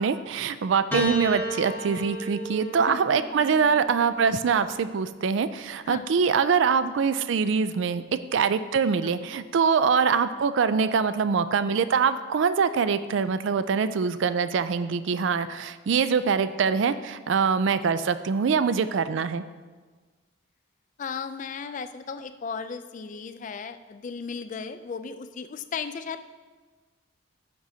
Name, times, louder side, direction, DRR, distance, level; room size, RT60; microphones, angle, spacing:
voice 1, 0.0-8.0 8.3-19.4, right 6 dB, 60° right, 12 dB, 0.3 m, -24 dB
Piano, 0.9-5.4 6.4-7.2, equal, 10° left, 0.9 m, -35 dB
voice 2, 2.8-3.3 5.8-6.1 9.0-9.2 21.0-26.2, left 5 dB, 40° left, 10 dB, 0.3 m, -36 dB
12.5 x 6.1 x 2.7 m, 1.4 s
head